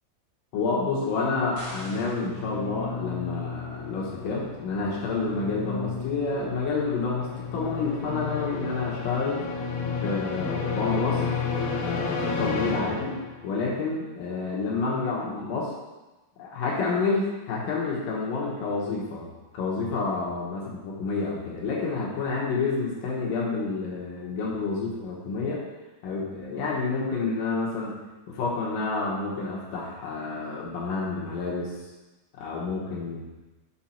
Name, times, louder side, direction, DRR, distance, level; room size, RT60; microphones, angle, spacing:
voice 1, 0.5-9.4 10.0-11.2 11.8-15.7 16.4-25.6 26.0-28.0 28.3-31.7 32.3-33.2, left 4 dB, 65° left, -4 dB, 2.5 m, -29 dB
sound 1, 1.0-13.6, left 5 dB, 85° left, 1.6 m, -32 dB
sound 2, 1.5-2.3, equal, 85° right, 0.7 m, -41 dB
6.4 x 5.6 x 4.3 m, 1.1 s
omnidirectional pair, 4.6 m